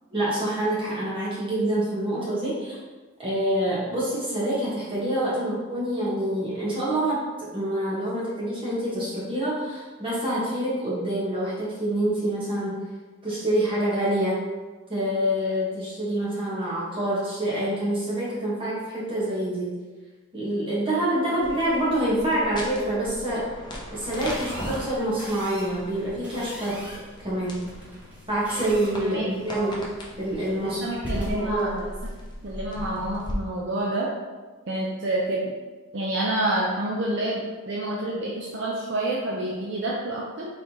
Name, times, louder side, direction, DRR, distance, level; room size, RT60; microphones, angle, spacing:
voice 1, 0.1-2.8 3.2-12.8 13.2-14.4 14.9-19.8 20.3-23.5 23.9-27.7 28.3-29.8 30.2-30.8 31.1-31.7, right 1 dB, 25° right, -8 dB, 1.3 m, -26 dB
sound 1, 21.4-33.3, equal, 20° left, 0.5 m, -39 dB
sound 2, 24.1-33.2, equal, 10° right, 0.8 m, -41 dB
voice 2, 30.6-31.9 32.4-34.1 34.7-35.5 35.9-40.5, right 1 dB, 55° right, -4 dB, 0.5 m, -28 dB
4.1 x 3.6 x 2.9 m, 1.3 s
head